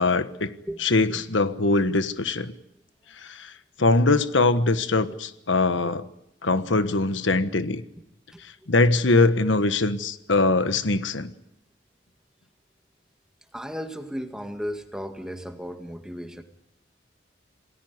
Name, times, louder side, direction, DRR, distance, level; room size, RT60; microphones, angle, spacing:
voice 1, 0.0-0.5 0.8-2.5 3.2-3.5 3.8-6.1 6.4-7.8 8.4-11.3, left 3 dB, 80° left, 11 dB, 1.4 m, -22 dB
voice 2, 0.7-1.2 8.3-8.4 13.5-16.4, equal, 5° right, 6 dB, 2.0 m, -35 dB
28.0 x 19.0 x 9.5 m, 0.80 s
head